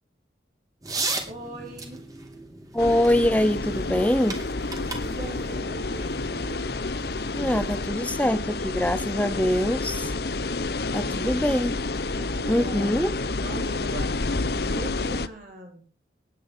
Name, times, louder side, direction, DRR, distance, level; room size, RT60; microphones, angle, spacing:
sound 1, 0.8-7.4, right 3 dB, 20° right, 3.3 m, -37 dB
voice 1, 1.3-2.1 4.9-6.2 10.9-11.3 12.1-13.0 13.4-15.8, right 1 dB, 45° right, 3.6 m, -40 dB
voice 2, 2.7-4.4 7.4-10.1 10.9-11.8 12.5-13.1, left 1 dB, 10° left, 0.7 m, -24 dB
sound 2, 2.8-15.3, left 3 dB, 55° left, 0.9 m, -29 dB
19.5 x 10.5 x 5.7 m
head